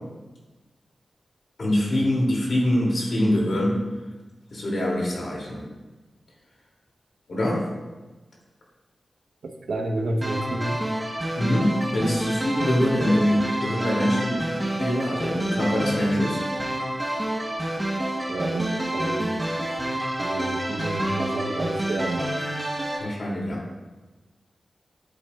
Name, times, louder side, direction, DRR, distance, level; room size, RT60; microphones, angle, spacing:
voice 1, 1.6-3.8 4.5-5.6 7.3-7.7 11.4-14.4 14.7-16.4 23.0-23.6, left 1 dB, 65° left, -4 dB, 2.9 m, -24 dB
voice 2, 9.4-10.8 18.3-19.3 19.8-19.9 20.2-22.3, right 2 dB, 85° right, 2 dB, 1.1 m, -30 dB
sound 1, 10.2-23.0, right 1 dB, 20° right, 1.2 m, -28 dB
11.0 x 8.2 x 2.5 m, 1.2 s
wide cardioid pair, 85°, 0 cm